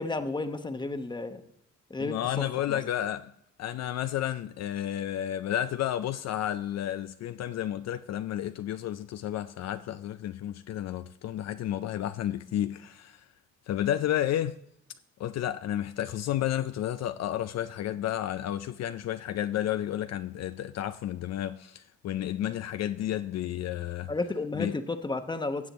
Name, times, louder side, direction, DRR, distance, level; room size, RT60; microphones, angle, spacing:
voice 1, 0.0-1.4 1.9-2.2 2.7-2.8 24.1-25.7, left 3 dB, 15° left, 1.0 m, -32 dB
voice 2, 2.0-3.3 3.6-13.2 13.7-14.6 15.2-24.1 24.6-24.7, left 11 dB, 60° left, 0.4 m, -31 dB
15.5 x 7.9 x 3.0 m
cardioid pair, 90°, 30 cm